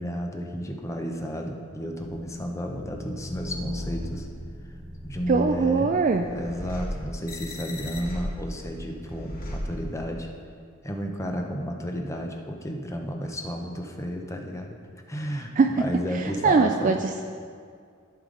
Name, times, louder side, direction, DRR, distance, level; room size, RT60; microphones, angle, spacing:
voice 1, 0.0-4.3 5.0-5.9 6.3-10.3 10.8-14.7 15.1-17.0, equal, 15° left, 2 dB, 0.7 m, -32 dB
sound 1, 2.0-10.3, equal, 45° left, 1.2 m, -37 dB
voice 2, 5.3-6.2 15.6-15.7 16.1-17.2, right 4 dB, 40° right, 4 dB, 0.3 m, -22 dB
14.5 x 5.0 x 3.9 m, 2.2 s
head